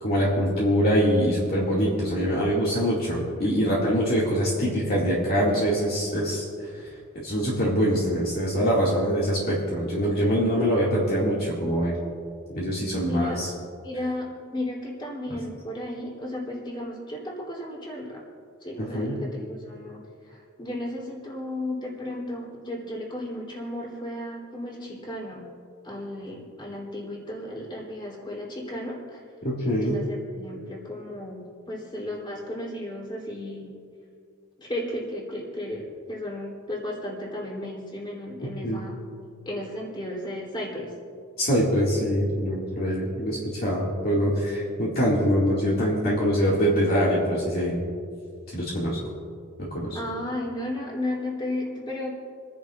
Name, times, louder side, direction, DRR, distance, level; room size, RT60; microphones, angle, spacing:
voice 1, 0.0-6.5 7.2-12.0 12.5-13.5 18.8-19.1 29.4-30.0 38.6-38.8 41.4-47.8 48.5-49.0 49.7-50.0, equal, 45° left, -6 dB, 2.2 m, -24 dB
voice 2, 12.9-13.4 13.8-18.2 18.6-25.5 25.8-29.2 29.8-33.8 34.6-39.0 39.5-40.9 49.9-52.1, left 1 dB, 25° left, -3 dB, 3.3 m, -34 dB
29.5 x 10.5 x 2.5 m, 2.3 s
head